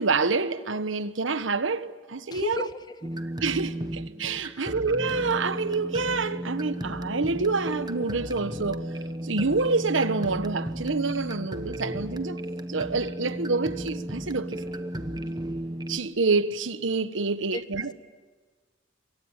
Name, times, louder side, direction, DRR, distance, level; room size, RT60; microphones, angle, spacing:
voice 1, 0.0-2.7 3.4-8.9 9.2-12.4 12.7-14.6 15.9-17.9, right 4 dB, 90° right, 1.3 m, -27 dB
voice 2, 2.3-3.2 4.5-4.7 17.5-17.6, left 1 dB, 20° left, 1.3 m, -35 dB
sound 1, 3.0-16.0, right 1 dB, 20° right, 1.3 m, -34 dB
27.5 x 23.5 x 9.0 m
head